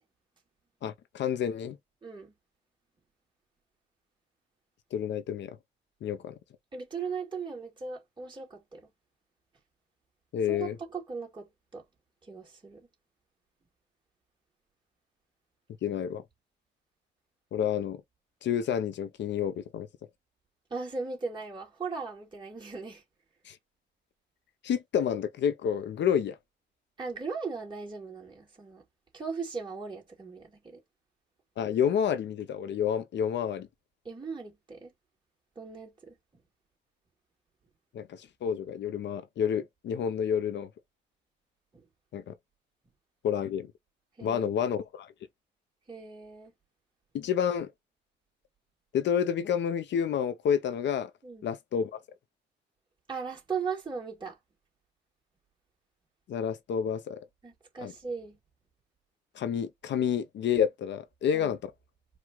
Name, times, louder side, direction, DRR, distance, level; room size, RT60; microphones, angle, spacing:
voice 1, 0.8-1.8 4.9-5.6 6.0-6.4 10.3-10.8 15.8-16.2 17.5-18.0 18.4-19.9 23.5-23.6 24.6-26.4 31.6-33.7 37.9-40.7 42.1-42.3 43.2-43.7 44.2-45.1 47.1-47.7 48.9-51.1 51.4-52.0 56.3-57.2 57.8-57.9 59.3-61.6, left 8 dB, 65° left, 0.7 m, -29 dB
voice 2, 2.0-2.3 6.7-8.9 10.5-11.8 12.2-12.9 20.7-23.0 27.0-28.8 29.1-30.8 34.0-34.9 35.6-36.2 41.7-41.8 44.2-44.7 45.9-46.5 51.2-51.5 53.1-54.4 57.4-58.4 61.3-61.5, right 5 dB, 25° right, 2.3 m, -38 dB
4.6 x 2.4 x 3.8 m
cardioid pair, 90°, 20 cm